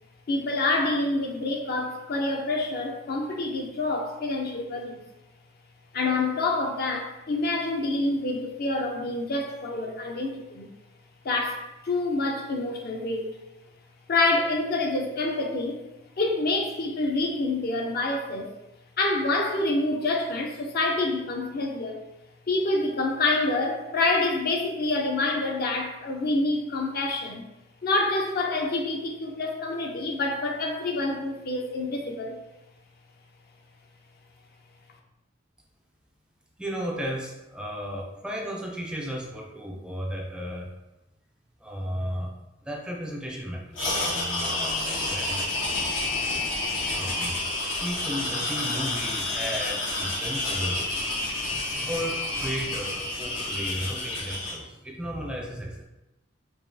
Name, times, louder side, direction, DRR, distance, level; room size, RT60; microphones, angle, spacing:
voice 1, 0.3-5.0 5.9-10.7 11.2-13.3 14.1-15.8 16.2-18.5 19.0-22.0 22.5-27.5 27.8-32.4, left 2 dB, 50° left, 2 dB, 0.5 m, -27 dB
voice 2, 36.6-40.7 41.6-42.3 42.7-45.4 46.9-47.4 47.8-50.9 51.5-55.8, equal, 5° right, -1 dB, 0.3 m, -34 dB
sound 1, 43.7-54.6, left 2 dB, 80° left, 1.0 m, -29 dB
4.9 x 2.3 x 2.6 m, 0.96 s
head